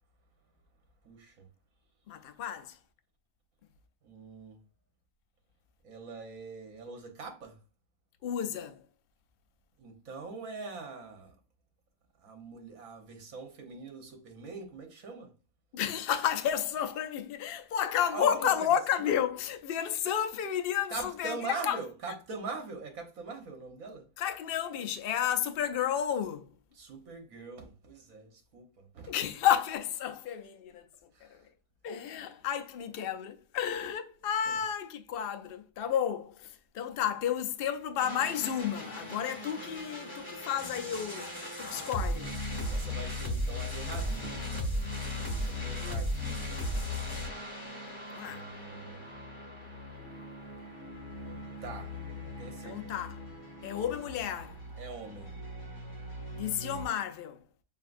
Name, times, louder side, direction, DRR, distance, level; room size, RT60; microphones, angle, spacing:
voice 1, 1.0-1.4 4.0-4.6 5.8-7.6 9.8-11.3 12.2-15.3 18.1-18.7 20.9-24.1 26.7-29.1 31.1-31.4 34.5-34.6 42.7-44.9 45.3-46.6 48.2-49.0 51.6-52.0 52.4-52.8 54.8-55.3, right 4 dB, 70° right, 1.4 m, -43 dB
voice 2, 2.1-2.8 8.2-8.8 15.7-21.4 21.6-21.8 24.2-26.5 29.1-30.8 31.8-41.3 41.6-42.3 45.7-46.1 48.1-48.4 52.6-53.2 53.6-54.6 56.3-57.4, left 9 dB, 55° left, 0.6 m, -31 dB
sound 1, 38.0-56.9, left 1 dB, 15° left, 1.2 m, -38 dB
6.7 x 2.6 x 2.5 m
omnidirectional pair, 1.5 m